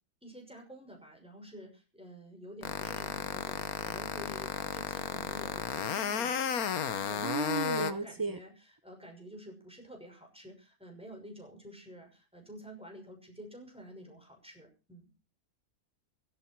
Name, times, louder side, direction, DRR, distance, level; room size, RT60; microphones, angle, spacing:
voice 1, 0.2-15.1, equal, 5° right, 6.0 m, -50 dB
sound 1, 2.6-7.9, left 8 dB, 85° left, 1.5 m, -33 dB
voice 2, 7.2-8.4, right 4 dB, 20° right, 0.5 m, -33 dB
16.0 x 14.0 x 4.6 m
omnidirectional pair, 1.5 m